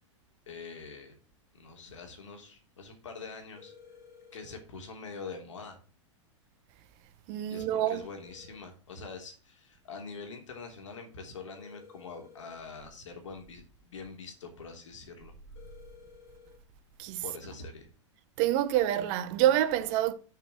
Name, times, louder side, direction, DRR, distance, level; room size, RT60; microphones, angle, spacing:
voice 1, 0.5-1.2 1.5-3.7 4.3-5.8 7.5-15.3 17.2-17.9, left 4 dB, 75° left, 3.1 m, -44 dB
sound 1, 3.6-4.6 7.6-8.6 11.6-12.6 15.6-16.6, left 6 dB, 55° left, 3.0 m, -54 dB
voice 2, 7.3-8.1 17.0-17.2 18.4-20.1, right 12 dB, 45° right, 1.1 m, -27 dB
7.2 x 5.8 x 7.5 m
hypercardioid pair, 105°, 16 cm